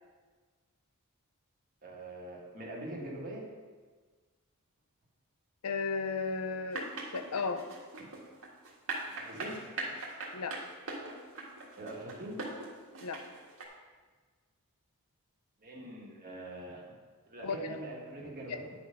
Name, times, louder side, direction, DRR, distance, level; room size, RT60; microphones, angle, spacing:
voice 1, 1.8-3.5 8.0-8.1 9.0-9.6 11.8-12.5 15.6-16.9 17.3-18.7, right 1 dB, 40° right, -2 dB, 1.6 m, -43 dB
voice 2, 5.6-6.9 7.1-7.6 10.3-10.6 13.0-13.2 17.4-17.8 18.5-18.6, left 4 dB, 90° left, 9 dB, 0.6 m, -34 dB
sound 1, 6.7-13.6, right 3 dB, 65° right, 1.7 m, -40 dB
9.7 x 4.3 x 5.2 m, 1.4 s
head